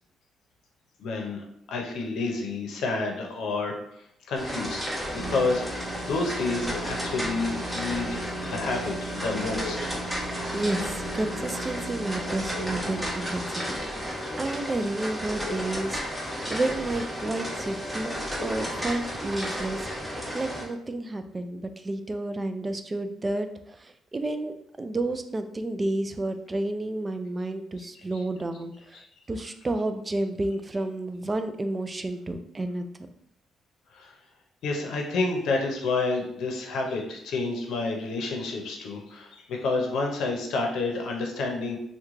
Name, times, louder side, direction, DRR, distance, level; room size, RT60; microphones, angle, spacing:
voice 1, 1.0-10.5 13.6-14.5 27.8-28.2 28.9-29.1 33.9-34.2 34.6-41.8, left 3 dB, 75° left, 2 dB, 0.6 m, -30 dB
sound 1, 4.4-20.6, equal, ahead, 0.9 m, -33 dB
sound 2, 5.2-13.2, right 2 dB, 60° right, 0.9 m, -39 dB
voice 2, 10.2-13.8 14.4-16.0 16.5-29.0 29.3-32.9, right 2 dB, 25° right, 8 dB, 0.3 m, -31 dB
3.0 x 2.2 x 3.6 m, 0.75 s
cardioid pair, 90°, 0 cm